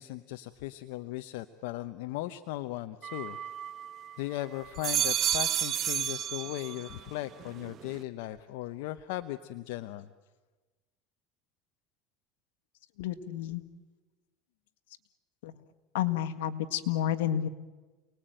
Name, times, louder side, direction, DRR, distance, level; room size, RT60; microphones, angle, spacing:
voice 1, 0.0-3.4 4.2-10.1, left 15 dB, 75° left, 8 dB, 0.9 m, -37 dB
sound 1, 3.0-4.2 4.6-7.0 7.4-8.0, right 10 dB, 40° right, 0.8 m, -32 dB
voice 2, 13.0-13.6 15.4-15.5 15.9-17.5, left 11 dB, 90° left, 9 dB, 1.7 m, -30 dB
29.0 x 20.0 x 9.1 m, 1.2 s
supercardioid pair, 125°, 0 cm